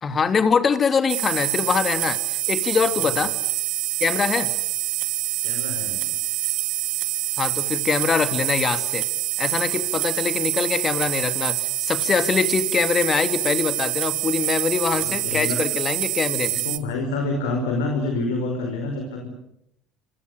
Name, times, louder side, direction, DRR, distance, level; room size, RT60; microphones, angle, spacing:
voice 1, 0.0-3.3 4.0-4.5 7.4-9.1 9.4-16.6, left 5 dB, 35° left, 10 dB, 3.1 m, -23 dB
sound 1, 1.1-16.8, right 18 dB, 65° right, 1.8 m, -26 dB
voice 2, 5.4-6.1 15.0-15.6 16.6-19.3, left 2 dB, 80° left, 3 dB, 5.4 m, -27 dB
28.5 x 26.0 x 6.7 m, 0.79 s
hypercardioid pair, 70°, 0 cm